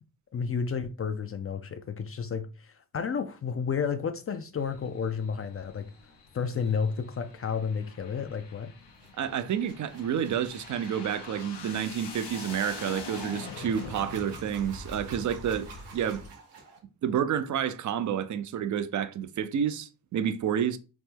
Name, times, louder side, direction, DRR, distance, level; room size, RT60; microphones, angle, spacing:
voice 1, 0.3-2.5 2.9-5.9 6.3-8.7, left 6 dB, 35° left, 0.4 m, -31 dB
sound 1, 4.6-16.3, left 3 dB, 85° left, 0.7 m, -44 dB
sound 2, 8.9-16.8, right 4 dB, 85° right, 0.9 m, -50 dB
voice 2, 9.2-16.2 17.0-20.8, right 8 dB, 45° right, 0.4 m, -29 dB
3.0 x 2.0 x 3.5 m
supercardioid pair, 50°, 41 cm